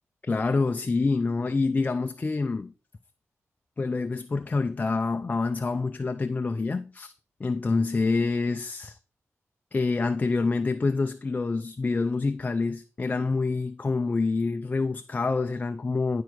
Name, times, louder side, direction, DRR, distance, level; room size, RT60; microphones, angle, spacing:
voice 1, 0.3-2.7 3.8-7.1 7.4-9.0 9.7-16.2, left 3 dB, 30° left, 0.4 m, -27 dB
11.5 x 4.6 x 4.6 m
wide cardioid pair, 125°, 5 cm